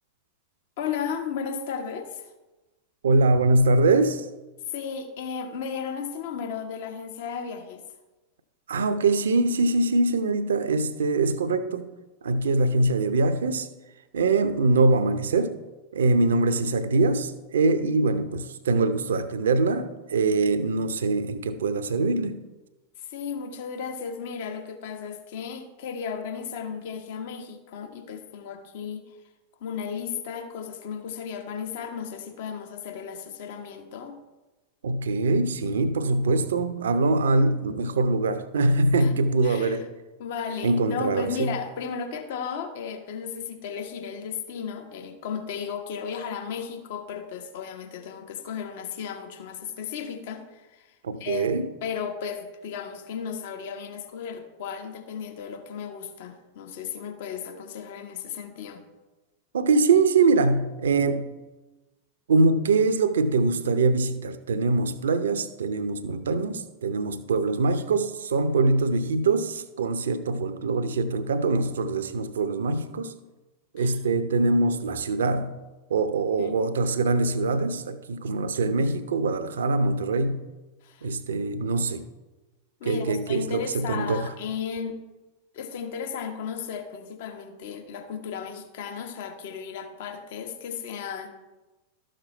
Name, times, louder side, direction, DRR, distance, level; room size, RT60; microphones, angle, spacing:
voice 1, 0.8-2.3 4.7-7.8 18.1-18.2 23.0-29.1 29.6-34.2 39.0-39.8 40.2-51.5 51.8-58.8 70.3-70.4 73.8-73.9 76.4-76.6 80.8-81.1 82.8-85.0 85.5-91.3, left 6 dB, 55° left, 6 dB, 1.2 m, -35 dB
voice 2, 3.0-4.3 8.7-11.9 12.2-13.7 14.1-15.6 15.9-22.4 34.8-39.9 40.6-41.5 51.0-51.7 59.5-61.3 62.3-73.1 73.7-75.6 75.9-80.4 81.0-82.0 82.8-84.3, right 3 dB, 65° right, 12 dB, 0.7 m, -23 dB
13.0 x 6.6 x 4.4 m, 1.1 s
figure-of-eight pair, 90°, 0 cm